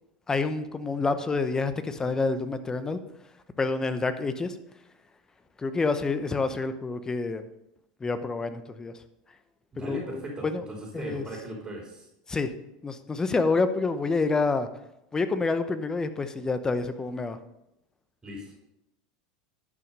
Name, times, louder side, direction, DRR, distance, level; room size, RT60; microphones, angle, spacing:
voice 1, 0.3-3.0 3.6-4.6 5.6-7.4 8.0-8.9 9.8-10.6 10.9-11.2 12.3-12.5 12.8-14.7 15.1-17.4, left 3 dB, 15° left, 11 dB, 0.8 m, -28 dB
voice 2, 9.7-12.1 18.2-18.6, right 1 dB, 15° right, -1 dB, 3.1 m, -38 dB
11.0 x 5.7 x 5.4 m, 0.86 s
supercardioid pair, 110°, 4 cm